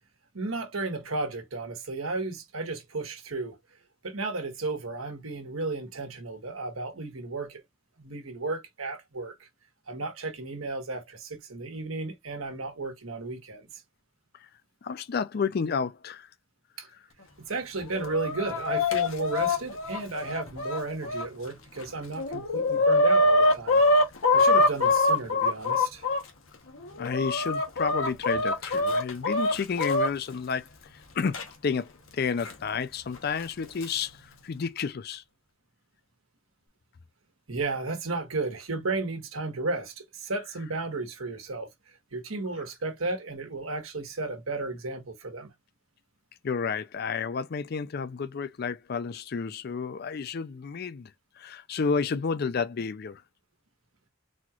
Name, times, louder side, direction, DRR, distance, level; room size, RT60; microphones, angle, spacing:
voice 1, 0.3-3.6 4.0-7.6 8.0-9.5 9.9-13.7 16.8-16.9 17.4-23.8 24.3-26.1 37.5-41.7 42.1-45.5, right 3 dB, 90° right, 1.3 m, -33 dB
voice 2, 14.8-16.3 27.0-35.2 46.4-53.2, left 5 dB, 50° left, 0.4 m, -31 dB
Chicken rooster, 17.8-21.2 21.8-21.9 22.2-26.2 26.8-30.1 31.3-31.4 32.4-32.5 33.5-33.8, left 2 dB, 80° left, 1.0 m, -24 dB
4.2 x 2.4 x 2.9 m
head